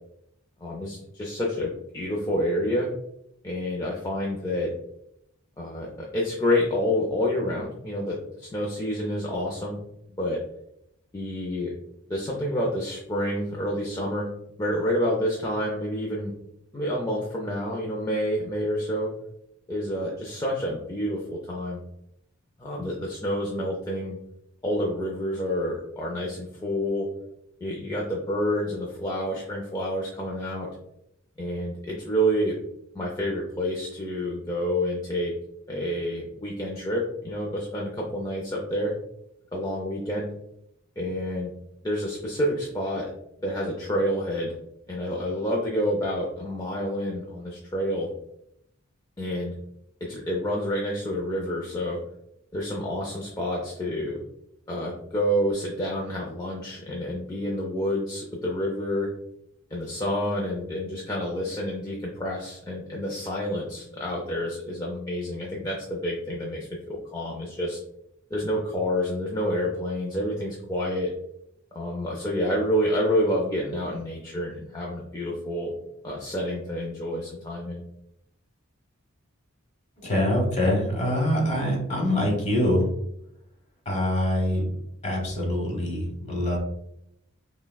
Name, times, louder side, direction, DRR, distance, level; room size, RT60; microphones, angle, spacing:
voice 1, 0.6-2.9 3.4-4.7 5.6-9.8 10.2-10.4 11.1-11.7 12.1-14.3 14.6-16.3 16.7-19.1 19.7-21.8 22.6-24.2 24.6-27.1 27.6-30.7 31.4-32.6 32.9-35.3 35.7-38.9 39.5-40.3 41.0-41.5 41.8-43.1 43.4-44.6 44.9-48.1 49.2-49.6 50.0-52.0 52.5-54.2 54.7-59.1 59.7-67.8 68.3-71.1 71.7-75.7 76.0-77.8, equal, 15° left, -3 dB, 0.4 m, -28 dB
voice 2, 80.0-82.9 83.8-84.7 85.0-86.6, left 1 dB, 35° left, 0 dB, 1.1 m, -24 dB
5.7 x 2.2 x 2.2 m, 0.78 s
head